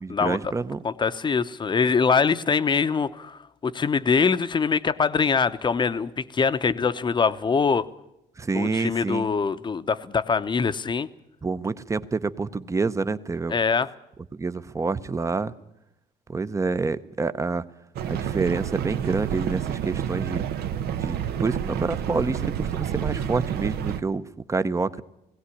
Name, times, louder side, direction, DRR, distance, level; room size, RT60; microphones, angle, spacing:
voice 1, 0.0-0.8 8.4-9.3 11.4-13.5 14.3-15.5 16.3-17.6 18.1-20.4 21.0-25.0, right 4 dB, 20° right, 14 dB, 0.8 m, -27 dB
voice 2, 0.8-7.9 8.5-11.1 13.5-13.9, left 5 dB, 25° left, 12 dB, 0.8 m, -23 dB
sound 1, 17.9-24.0, right 9 dB, 70° right, 0.9 m, -29 dB
19.0 x 17.0 x 9.9 m, 0.88 s
cardioid pair, 110°, 17 cm